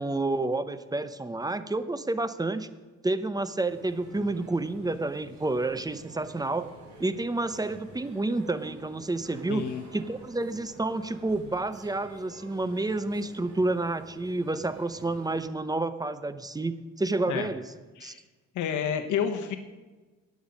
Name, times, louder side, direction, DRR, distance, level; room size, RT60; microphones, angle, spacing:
voice 1, 0.0-2.7 3.0-6.7 7.0-9.6 9.9-17.6 18.0-18.2, right 2 dB, 15° right, 13 dB, 0.7 m, -29 dB
sound 1, 3.6-15.4, right 2 dB, 65° right, 4.5 m, -49 dB
voice 2, 9.5-9.8 17.3-17.5 18.0-18.2 18.5-19.6, left 8 dB, 80° left, 7 dB, 1.1 m, -29 dB
13.5 x 9.5 x 5.3 m, 1.2 s
cardioid pair, 90°, 30 cm